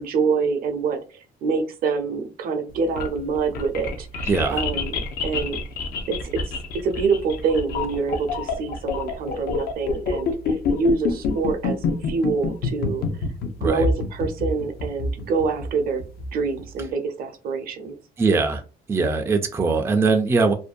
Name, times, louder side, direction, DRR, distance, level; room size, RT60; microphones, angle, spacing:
voice 1, 0.0-5.6 6.1-6.2 6.8-13.0 13.6-16.0 16.3-18.0, right 4 dB, 60° right, 0.6 m, -26 dB
sound 1, 2.7-16.8, left 3 dB, 65° left, 0.6 m, -27 dB
voice 2, 4.2-4.6 13.6-13.9 18.2-18.6 18.9-20.5, right 4 dB, 15° right, 0.4 m, -21 dB
2.6 x 2.2 x 2.4 m
cardioid pair, 110°, 17 cm